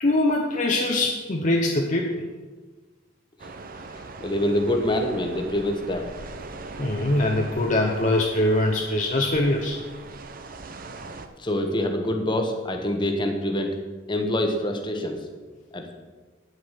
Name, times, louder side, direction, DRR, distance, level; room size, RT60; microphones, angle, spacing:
voice 1, 0.0-2.3 6.8-9.8, left 1 dB, 40° left, 1 dB, 0.8 m, -23 dB
sound 1, 3.4-11.3, right 3 dB, 45° right, 0.7 m, -40 dB
voice 2, 3.9-6.1 11.4-13.8 14.1-15.2 15.7-15.9, left 1 dB, 25° left, 3 dB, 1.2 m, -25 dB
9.3 x 8.0 x 5.7 m, 1.3 s
head